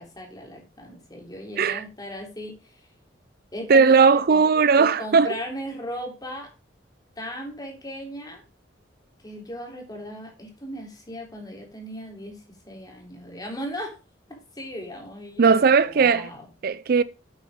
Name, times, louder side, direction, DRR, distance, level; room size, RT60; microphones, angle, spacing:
voice 1, 0.0-2.6 3.5-4.4 4.8-6.5 7.2-8.4 9.2-13.9 14.5-16.5, equal, 20° left, 3.3 m, -37 dB
voice 2, 3.7-5.3 15.4-16.3 16.6-17.0, right 5 dB, 55° right, 0.4 m, -18 dB
8.5 x 8.0 x 4.9 m
head